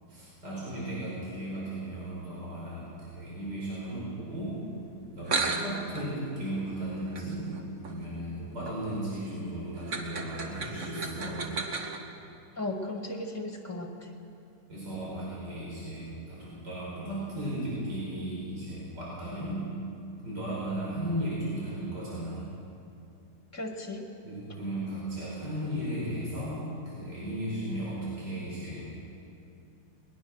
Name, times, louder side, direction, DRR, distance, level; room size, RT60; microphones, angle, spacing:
voice 1, 0.1-4.6 5.1-11.5 14.7-19.7 20.2-22.4 24.2-28.9, right 1 dB, 85° right, -7 dB, 6.0 m, -35 dB
sound 1, 4.9-5.0 5.2-12.0, right 4 dB, 50° right, 1.7 m, -36 dB
voice 2, 12.6-14.1 23.5-24.1, left 2 dB, 10° left, 2 dB, 1.9 m, -36 dB
21.0 x 20.5 x 6.4 m, 2.6 s
omnidirectional pair, 1.8 m